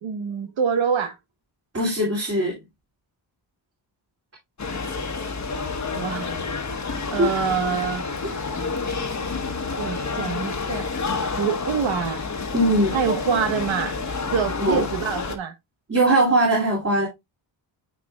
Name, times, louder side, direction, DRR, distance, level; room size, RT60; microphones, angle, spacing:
voice 1, 0.0-1.2 5.9-6.3 7.1-8.0 9.8-10.9 11.4-12.2 12.9-14.0 14.3-15.5, right 7 dB, 85° right, 1.3 m, -25 dB
voice 2, 1.7-2.6 7.2-7.3 12.5-13.0 14.6-14.8 15.9-17.1, right 1 dB, 30° right, 2.7 m, -20 dB
sound 1, 4.6-15.4, left 4 dB, 35° left, 1.1 m, -29 dB
9.1 x 4.8 x 2.3 m
cardioid pair, 90°, 46 cm